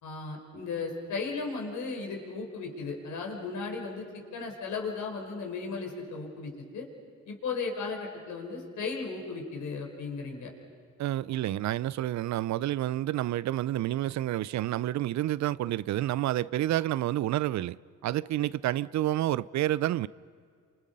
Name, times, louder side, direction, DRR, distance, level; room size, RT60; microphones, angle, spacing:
voice 1, 0.0-4.0 4.3-6.9 7.3-10.5, left 4 dB, 75° left, 5.0 m, -35 dB
voice 2, 11.0-17.8 18.0-20.1, right 14 dB, 65° right, 0.5 m, -29 dB
30.0 x 27.0 x 5.4 m
cardioid pair, 90°, 30 cm